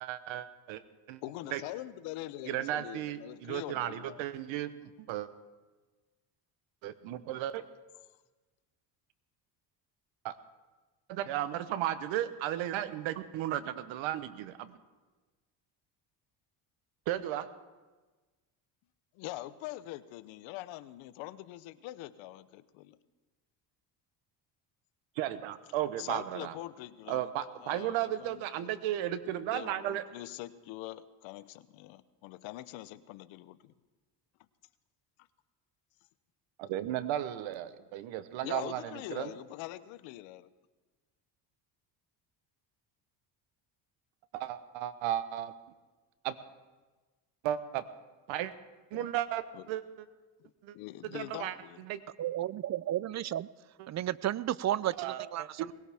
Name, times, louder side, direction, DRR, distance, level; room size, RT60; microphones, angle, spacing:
voice 1, 0.0-0.8 1.1-1.2 1.5-1.6 2.4-5.3 6.8-7.6 10.2-10.4 11.1-14.8 17.1-17.5 25.2-26.5 27.1-30.0 36.6-39.3 44.3-45.5 46.2-46.4 47.4-47.8 48.3-48.5 48.9-50.1 50.6-50.7 51.0-52.0 55.0-55.7, right 12 dB, 85° right, 13 dB, 1.0 m, -35 dB
voice 2, 1.2-4.2 19.2-23.0 26.0-27.3 27.6-28.7 29.5-33.7 38.4-40.5 48.9-49.1 49.5-49.6 50.4-51.8, left 16 dB, 90° left, 14 dB, 0.8 m, -44 dB
voice 3, 52.2-53.5 53.9-55.7, right 12 dB, 40° right, 20 dB, 0.4 m, -33 dB
20.0 x 17.0 x 3.5 m, 1.3 s
cardioid pair, 90°, 45 cm